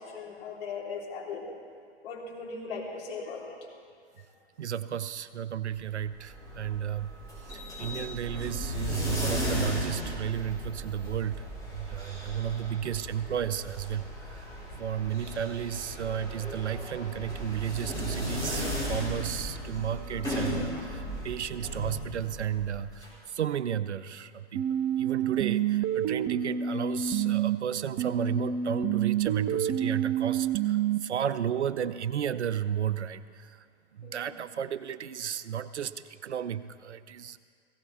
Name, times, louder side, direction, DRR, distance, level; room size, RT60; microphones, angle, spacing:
voice 1, 0.0-1.6 2.0-3.6 34.0-34.3, left 4 dB, 55° left, -3 dB, 3.6 m, -38 dB
voice 2, 4.6-7.2 7.4-14.4 14.7-24.7 25.0-33.6 33.9-37.4, right 9 dB, 80° right, 14 dB, 0.7 m, -33 dB
sound 1, 6.0-23.1, equal, 10° left, 4.7 m, -36 dB
sound 2, 24.6-27.6 28.0-31.0, right 9 dB, 25° right, 0.5 m, -28 dB
16.5 x 16.5 x 4.2 m, 2.1 s
figure-of-eight pair, 115°, 34 cm